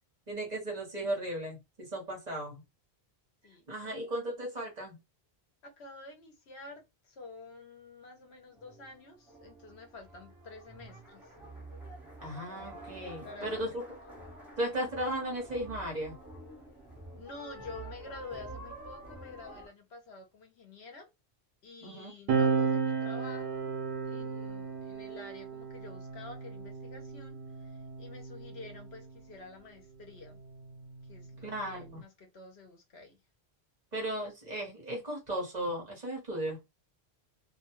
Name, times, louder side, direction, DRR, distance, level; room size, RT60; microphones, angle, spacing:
voice 1, 0.3-2.6 3.7-5.0 12.2-13.8 14.6-16.2 21.8-22.1 31.4-32.0 33.9-36.6, right 1 dB, 40° right, 1.1 m, -36 dB
voice 2, 3.4-4.1 5.6-11.3 13.2-13.6 17.2-21.1 21.6-23.7 24.0-30.4 31.1-33.2, left 3 dB, 75° left, 1.0 m, -49 dB
sound 1, 8.3-19.7, right 1 dB, ahead, 1.0 m, -48 dB
sound 2, 22.3-29.2 30.2-32.0, right 5 dB, 75° right, 1.0 m, -34 dB
2.6 x 2.2 x 2.9 m
omnidirectional pair, 1.1 m